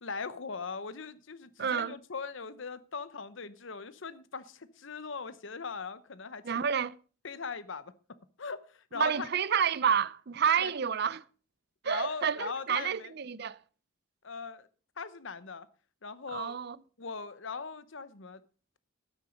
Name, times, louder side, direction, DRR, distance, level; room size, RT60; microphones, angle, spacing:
voice 1, 0.0-6.6 7.2-9.3 10.6-10.7 11.8-13.1 14.2-14.7 15.0-15.7 16.0-16.6 17.0-18.4, left 5 dB, 65° left, 0.9 m, -40 dB
voice 2, 1.6-1.9 6.4-7.0 8.9-11.2 11.8-13.6 16.3-16.8, right 7 dB, 50° right, 0.5 m, -29 dB
12.5 x 9.0 x 5.1 m
head